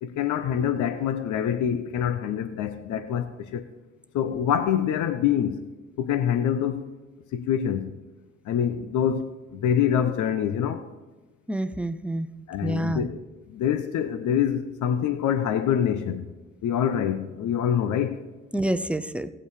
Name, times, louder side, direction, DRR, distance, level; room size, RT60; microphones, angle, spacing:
voice 1, 0.0-3.7 4.1-5.6 6.0-6.9 7.3-7.9 8.4-10.9 12.5-16.3 16.6-18.2, left 9 dB, 80° left, 0.8 m, -25 dB
voice 2, 11.5-12.3 12.6-13.1 18.5-19.3, right 1 dB, 5° right, 0.6 m, -27 dB
16.5 x 8.2 x 4.9 m
cardioid pair, 90°, 30 cm